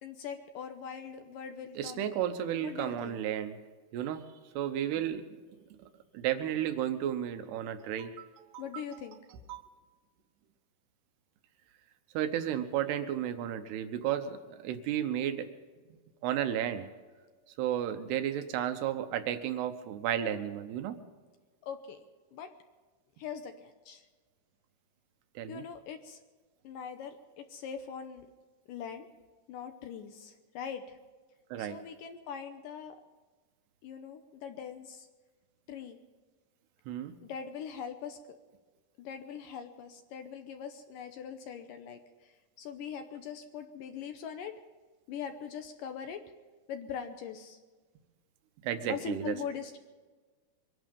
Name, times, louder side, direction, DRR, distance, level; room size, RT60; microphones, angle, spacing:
voice 1, 0.0-2.1 2.6-3.2 8.6-9.2 21.6-22.0 22.3-22.5 23.2-24.0 25.5-26.2 26.6-28.3 28.7-29.1 29.5-31.0 31.6-33.0 33.8-35.1 35.7-36.0 37.2-38.2 39.0-44.5 45.1-46.2 46.7-47.6 48.9-49.8, left 7 dB, 75° left, 7 dB, 2.1 m, -42 dB
voice 2, 1.8-3.6 3.9-4.2 4.6-5.4 5.8-5.9 6.1-8.8 9.5-9.6 12.1-15.5 16.2-16.9 17.6-21.0 25.4-25.6 31.5-31.8 36.9-37.2 48.6-49.4, right 10 dB, 90° right, 8 dB, 3.1 m, -33 dB
23.5 x 11.0 x 5.3 m, 1.3 s
omnidirectional pair, 4.6 m